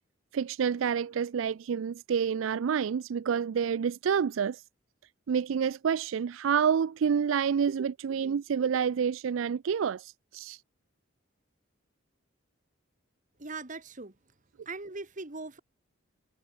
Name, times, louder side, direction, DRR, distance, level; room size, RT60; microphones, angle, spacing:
voice 1, 0.3-4.6 5.3-10.6, right 7 dB, 85° right, 0.4 m, -28 dB
voice 2, 13.4-14.1 14.6-15.6, right 3 dB, 40° right, 1.7 m, -40 dB
head